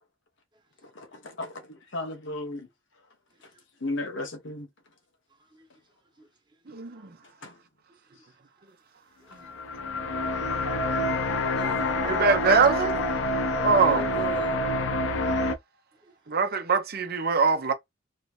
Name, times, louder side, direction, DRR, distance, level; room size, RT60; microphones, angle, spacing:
voice 1, 1.0-1.5 1.9-2.7 3.8-4.7 7.4-7.5, left 2 dB, 65° left, 1.1 m, -34 dB
voice 2, 6.7-7.0 10.7-10.8 12.1-13.0 13.6-14.0 16.3-17.7, right 5 dB, 55° right, 0.8 m, -23 dB
sound 1, 9.4-15.6, left 1 dB, 90° left, 0.7 m, -27 dB
voice 3, 11.5-12.6 13.0-13.1 13.6-14.6 16.0-16.1, right 2 dB, 25° right, 1.1 m, -40 dB
3.2 x 2.9 x 3.2 m
head